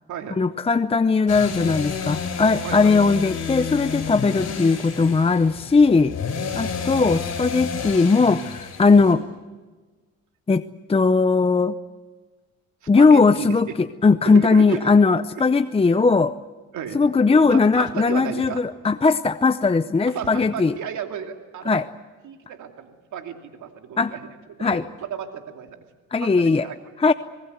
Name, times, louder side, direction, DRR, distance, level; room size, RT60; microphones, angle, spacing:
voice 1, 0.4-6.1 6.6-9.2 10.5-10.6 10.9-11.8 12.9-16.3 16.9-20.7 21.7-21.9 24.0-24.1 24.6-24.8 26.1-26.7 27.0-27.1, left 4 dB, 20° left, 12 dB, 0.6 m, -18 dB
sound 1, 1.3-9.1, left 5 dB, 60° left, 6.8 m, -30 dB
voice 2, 2.6-3.0 6.4-6.9 9.0-9.2 12.8-13.8 14.2-14.9 15.3-15.4 16.7-17.0 17.3-18.6 20.1-21.9 22.2-24.2 24.6-25.8 26.2-26.8, right 8 dB, 75° right, 4 dB, 2.7 m, -34 dB
26.5 x 20.0 x 8.1 m, 1.3 s
cardioid pair, 90°, 30 cm